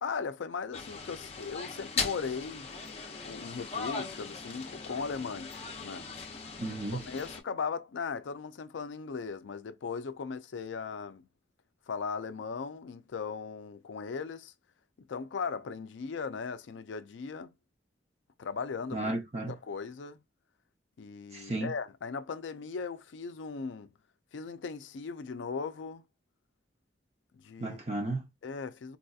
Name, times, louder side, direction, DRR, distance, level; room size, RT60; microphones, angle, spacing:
voice 1, 0.0-2.7 3.2-6.1 6.9-11.3 11.9-14.5 15.0-17.5 18.4-19.1 19.5-20.2 21.0-23.9 24.3-26.0 27.3-27.8 28.4-29.0, left 5 dB, 85° left, 0.4 m, -38 dB
sound 1, 0.7-7.4, left 5 dB, 35° left, 0.6 m, -39 dB
voice 2, 6.6-7.0 18.9-19.5 21.3-21.7 27.6-28.3, right 2 dB, 35° right, 0.8 m, -33 dB
4.1 x 2.7 x 2.3 m
head